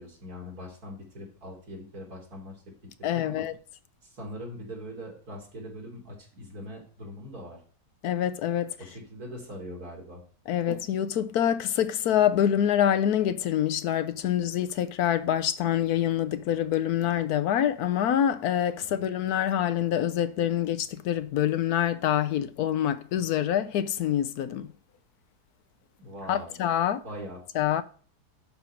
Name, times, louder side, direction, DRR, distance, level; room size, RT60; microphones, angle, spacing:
voice 1, 0.0-2.6 3.0-3.5 4.0-7.6 8.8-10.2 18.8-19.1 26.0-26.6 27.0-27.4, equal, 65° right, 3.4 m, -42 dB
voice 2, 3.0-3.5 8.0-8.8 10.5-24.7 26.3-27.0 27.5-27.8, left 10 dB, 75° left, 1.1 m, -26 dB
11.5 x 5.5 x 4.5 m
omnidirectional pair, 1.7 m